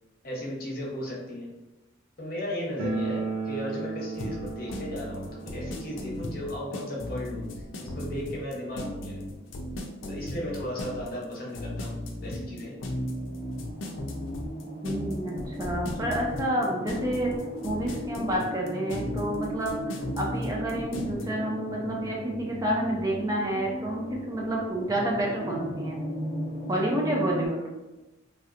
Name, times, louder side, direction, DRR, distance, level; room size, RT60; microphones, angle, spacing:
voice 1, 0.2-1.5 2.2-9.2 10.1-12.8, left 1 dB, 45° left, -3 dB, 0.9 m, -36 dB
sound 1, 2.8-9.5 9.8-9.9 10.1-10.2 11.0-11.1 11.3-12.5, right 4 dB, 85° right, 0.5 m, -37 dB
sound 2, 4.2-21.2, left 1 dB, 70° left, 0.5 m, -36 dB
sound 3, 11.4-27.5, equal, 65° right, 1.5 m, -37 dB
voice 2, 14.8-17.3 17.6-26.0 26.7-27.6, right 1 dB, 20° right, -2 dB, 0.3 m, -29 dB
3.1 x 2.8 x 2.4 m, 1.0 s
head